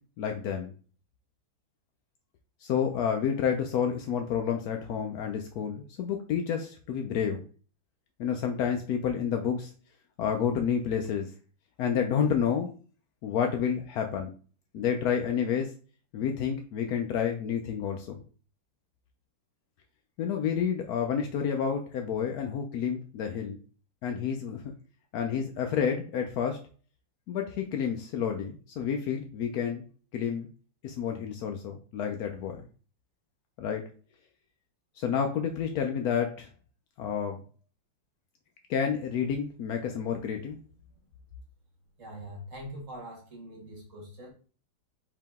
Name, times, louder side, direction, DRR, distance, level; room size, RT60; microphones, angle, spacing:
voice 1, 0.2-0.7 2.6-7.4 8.2-9.7 10.2-11.3 11.8-12.7 13.2-14.3 14.7-15.7 16.1-18.2 20.2-23.6 24.0-24.7 25.1-26.6 27.3-29.9 30.1-30.5 30.8-32.6 33.6-33.8 35.0-36.5 37.0-37.4 38.7-40.6, left 7 dB, 75° left, 4 dB, 0.8 m, -29 dB
voice 2, 42.0-44.3, equal, 45° right, -1 dB, 1.7 m, -43 dB
4.8 x 2.9 x 3.5 m, 0.38 s
omnidirectional pair, 2.2 m